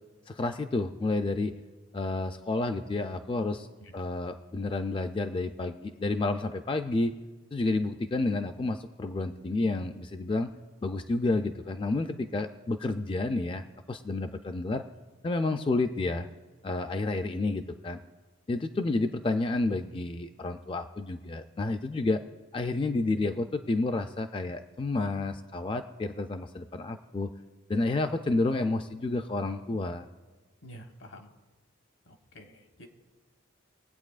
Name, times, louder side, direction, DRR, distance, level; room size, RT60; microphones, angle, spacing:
voice 1, 0.3-1.5 1.9-3.7 3.9-7.1 7.5-10.5 10.8-14.8 15.2-16.3 16.6-18.0 18.5-22.2 22.5-27.3 27.7-30.1, left 2 dB, 25° left, 7 dB, 0.3 m, -30 dB
voice 2, 30.6-31.3 32.0-32.9, equal, 80° left, 4 dB, 1.3 m, -49 dB
21.5 x 8.4 x 2.4 m, 1.3 s
head